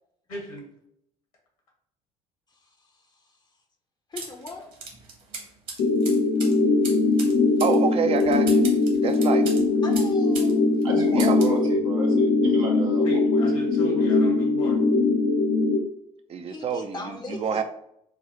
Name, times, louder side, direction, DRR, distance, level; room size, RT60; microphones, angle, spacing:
voice 1, 0.3-0.7 13.0-14.9, equal, 75° left, -1 dB, 1.6 m, -38 dB
voice 2, 4.1-4.7 9.8-10.6 16.5-17.6, left 3 dB, 25° left, 3 dB, 0.7 m, -38 dB
sound 1, 4.2-10.5 10.8-11.6, right 4 dB, 50° right, 1.4 m, -39 dB
sound 2, 5.8-15.8, left 3 dB, 60° left, 0.8 m, -21 dB
voice 3, 7.6-8.6 9.0-9.5 11.1-11.4 16.3-17.6, right 6 dB, 35° right, 9 dB, 0.5 m, -27 dB
voice 4, 10.8-13.4 13.9-14.1, right 2 dB, 75° right, -1 dB, 1.1 m, -32 dB
6.5 x 2.3 x 3.1 m, 0.75 s
figure-of-eight pair, 55°, 18 cm